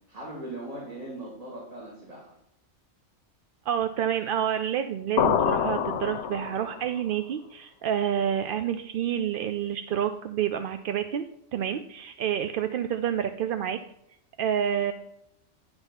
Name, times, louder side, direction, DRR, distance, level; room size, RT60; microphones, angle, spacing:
voice 1, 0.1-2.3, right 1 dB, 35° right, -5 dB, 2.3 m, -39 dB
voice 2, 3.7-13.8 14.4-14.9, right 9 dB, 60° right, 9 dB, 0.6 m, -28 dB
sound 1, 5.2-6.9, left 8 dB, 70° left, 0.8 m, -26 dB
10.5 x 3.5 x 5.7 m, 0.78 s
omnidirectional pair, 1.2 m